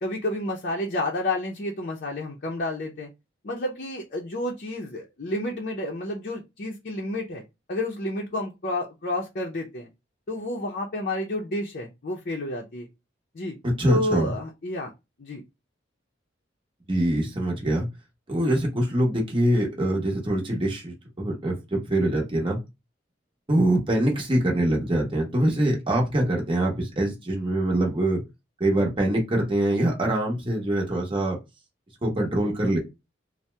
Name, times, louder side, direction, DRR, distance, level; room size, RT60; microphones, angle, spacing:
voice 1, 0.0-3.1 3.4-7.4 7.7-9.9 10.3-12.9 13.3-13.6 13.9-14.9 15.2-15.4 25.4-25.6, left 1 dB, 50° left, 0 dB, 0.5 m, -30 dB
voice 2, 13.6-14.3 16.9-17.9 18.3-22.6 23.5-28.2 28.6-31.4 32.0-32.8, right 1 dB, 25° right, -1 dB, 0.8 m, -24 dB
2.7 x 2.0 x 3.2 m, 0.23 s
head